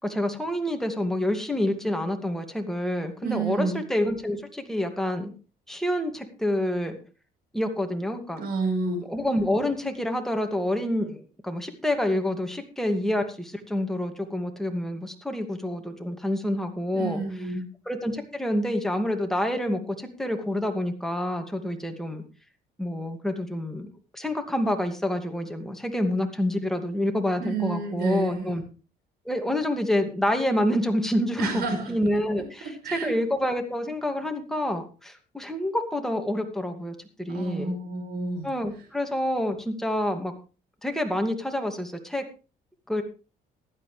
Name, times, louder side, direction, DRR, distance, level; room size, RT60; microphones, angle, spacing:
voice 1, 0.0-5.3 5.7-7.0 7.5-8.4 9.1-17.2 17.9-22.2 22.8-23.9 24.1-28.6 29.3-31.6 31.9-37.7 38.4-40.3 40.8-42.2 42.9-43.0, left 1 dB, ahead, 4 dB, 2.4 m, -27 dB
voice 2, 3.2-3.8 8.4-9.0 16.9-17.7 27.4-28.5 31.4-31.9 32.6-33.1 37.3-38.5, right 3 dB, 65° right, 4 dB, 5.5 m, -30 dB
15.5 x 12.5 x 3.4 m, 0.34 s
cardioid pair, 110°, 17 cm